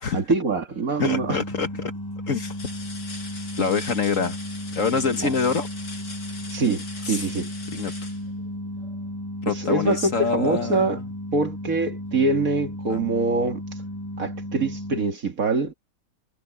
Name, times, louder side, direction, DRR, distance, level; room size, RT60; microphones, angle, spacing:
voice 1, 0.1-1.4 5.2-5.3 6.5-7.5 9.5-11.0 11.3-13.6 14.2-15.7, right 3 dB, 50° right, 2.4 m, -24 dB
sound 1, 0.6-1.1 1.7-1.8 2.4-9.1 10.8-11.0 11.4-12.5 13.8-13.9, left 4 dB, 75° left, 6.2 m, -42 dB
voice 2, 1.0-1.9 2.3-2.5 3.6-4.4 4.7-5.7 7.0-7.2 7.7-7.9 9.4-11.0 12.9-13.1, left 5 dB, 50° left, 1.7 m, -25 dB
sound 2, 1.0-15.1, equal, 10° left, 5.1 m, -34 dB
omnidirectional pair, 1.9 m